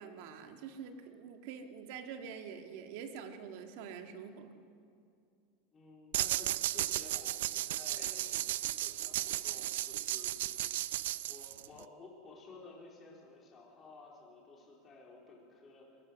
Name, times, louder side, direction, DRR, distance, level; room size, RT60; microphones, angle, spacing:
voice 1, 0.0-4.6, right 7 dB, 60° right, 6 dB, 1.9 m, -46 dB
voice 2, 5.7-10.8 11.3-16.0, left 3 dB, 20° left, -2 dB, 3.9 m, -54 dB
sound 1, 6.1-11.8, right 14 dB, 85° right, 0.6 m, -35 dB
23.5 x 19.5 x 6.3 m, 2.4 s
supercardioid pair, 160°, 0 cm